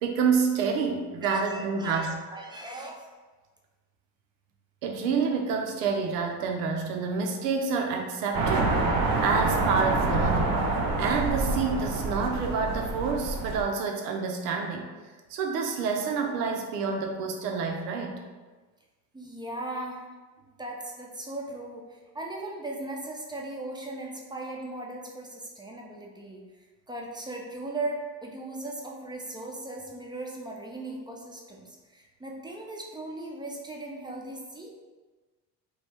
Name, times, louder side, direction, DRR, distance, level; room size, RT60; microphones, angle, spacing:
voice 1, 0.0-2.1 4.8-9.0 9.2-10.6 11.0-14.9 15.3-18.2, right 5 dB, 85° right, 2 dB, 0.6 m, -28 dB
voice 2, 1.2-3.1 19.1-20.1 20.6-26.4 26.9-34.7, right 2 dB, 10° right, -1 dB, 0.5 m, -38 dB
sound 1, 8.3-13.6, right 2 dB, 50° right, 0.7 m, -27 dB
3.0 x 2.2 x 3.3 m, 1.3 s
supercardioid pair, 70°, 46 cm